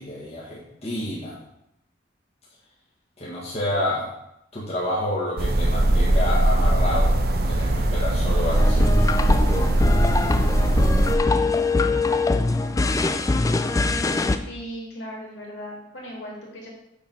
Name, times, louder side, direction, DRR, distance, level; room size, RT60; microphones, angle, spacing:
voice 1, 0.0-1.4 3.2-4.1 4.5-7.2 7.5-8.9, left 1 dB, 35° left, -6 dB, 1.7 m, -29 dB
sound 1, 5.4-11.2, right 1 dB, 55° right, 0.7 m, -20 dB
sound 2, 8.5-14.4, left 3 dB, 20° left, 0.3 m, -23 dB
voice 2, 14.5-16.7, equal, 65° left, -3 dB, 2.6 m, -37 dB
7.0 x 4.7 x 5.5 m, 0.81 s
head